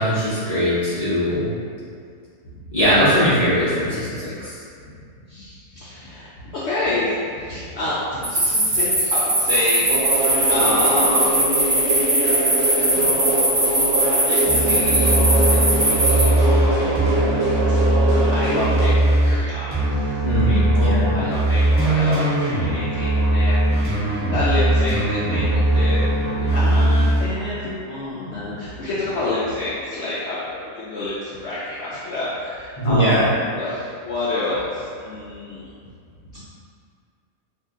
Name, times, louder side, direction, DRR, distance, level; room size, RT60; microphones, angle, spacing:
voice 1, 0.0-1.5 2.7-4.5 20.2-21.1 32.8-33.2, equal, 40° left, -13 dB, 0.6 m, -20 dB
voice 2, 5.3-11.4 13.7-17.3 17.6-17.8 18.3-20.2 20.4-23.6 24.1-35.7 36.3-36.5, left 2 dB, 80° left, -9 dB, 0.6 m, -28 dB
sound 1, 8.2-16.2, right 1 dB, 35° right, 0.8 m, -19 dB
sound 2, 9.9-18.9, right 2 dB, 75° right, 1.1 m, -23 dB
sound 3, 14.5-19.4 19.7-27.2, right 1 dB, 20° right, 0.3 m, -19 dB
2.7 x 2.7 x 3.6 m, 2.2 s
omnidirectional pair, 1.8 m